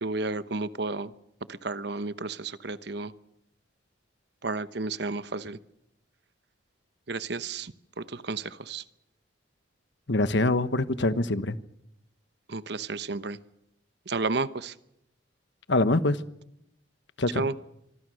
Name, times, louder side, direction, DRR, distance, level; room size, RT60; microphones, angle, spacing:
voice 1, 0.0-1.1 1.5-3.1 4.4-5.6 7.1-8.8 12.5-13.4 14.1-14.7 17.3-17.5, right 3 dB, 55° right, 1.0 m, -32 dB
voice 2, 10.1-11.6 15.7-16.2 17.2-17.5, left 2 dB, 65° left, 1.2 m, -24 dB
25.0 x 24.0 x 6.4 m
head